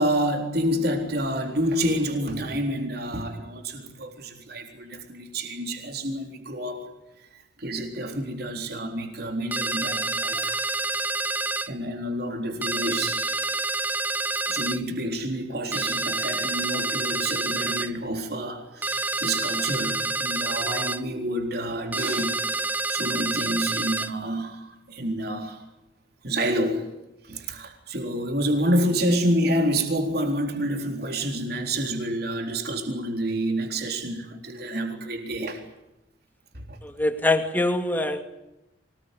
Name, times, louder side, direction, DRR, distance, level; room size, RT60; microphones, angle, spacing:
voice 1, 0.0-6.8 7.2-10.6 11.3-13.4 14.5-25.6 26.2-26.9 27.2-35.6 36.5-36.8, right 1 dB, 55° right, 3.9 m, -28 dB
sound 1, 9.5-11.7 12.6-14.8 15.7-17.9 18.8-21.0 21.9-24.1, right 2 dB, 10° right, 0.9 m, -28 dB
voice 2, 36.8-38.2, left 2 dB, 10° left, 2.3 m, -24 dB
25.0 x 20.0 x 9.8 m
head